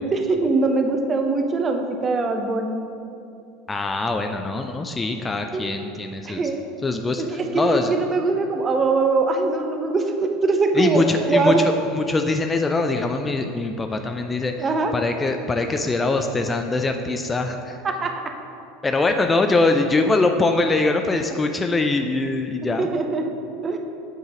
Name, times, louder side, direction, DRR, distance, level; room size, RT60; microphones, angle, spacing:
voice 1, 0.1-2.8 5.5-5.6 6.2-6.6 7.3-11.6 14.6-15.0 17.8-18.3 22.8-23.3 23.6-23.8, right 3 dB, 25° right, 5 dB, 0.7 m, -22 dB
voice 2, 3.7-6.5 6.8-7.2 7.5-7.9 10.7-17.8 18.8-22.9, left 3 dB, 15° left, 5 dB, 0.4 m, -23 dB
8.2 x 3.9 x 5.0 m, 2.6 s
figure-of-eight pair, 75°, 0 cm